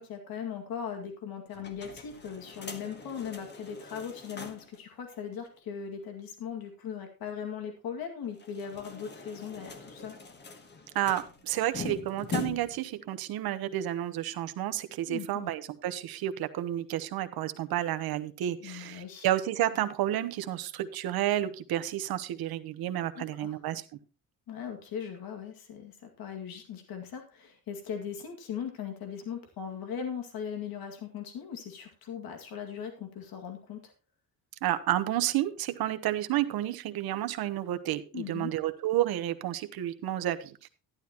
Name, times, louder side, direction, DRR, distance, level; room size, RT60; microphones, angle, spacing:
voice 1, 0.0-10.2 15.1-15.5 18.6-19.3 23.2-23.6 24.5-33.9 38.1-38.5, left 7 dB, 80° left, 4 dB, 2.2 m, -39 dB
sound 1, 1.5-4.8 5.1-5.2 5.4-5.5 8.3-12.9, left 5 dB, 30° left, 1.2 m, -42 dB
voice 2, 10.9-23.8 34.6-40.7, right 13 dB, 80° right, 10 dB, 1.0 m, -31 dB
11.5 x 11.5 x 3.0 m, 0.34 s
cardioid pair, 165°, 36 cm